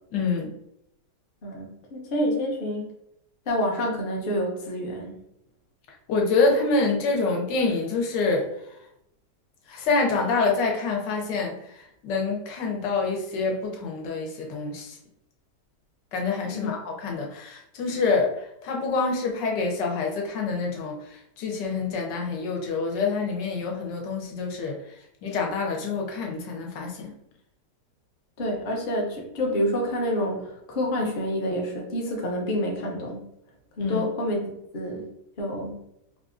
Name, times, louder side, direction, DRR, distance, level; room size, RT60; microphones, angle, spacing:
voice 1, 0.1-0.5 6.1-8.5 9.7-15.0 16.1-24.8 25.2-27.1 33.8-34.1, left 4 dB, 85° left, 0 dB, 1.4 m, -26 dB
voice 2, 1.4-2.9 3.5-5.1 16.4-16.7 28.4-33.3 33.8-34.4 34.7-35.1 35.4-35.8, equal, 50° left, 0 dB, 0.6 m, -28 dB
4.4 x 2.4 x 2.5 m, 0.78 s
omnidirectional pair, 1.9 m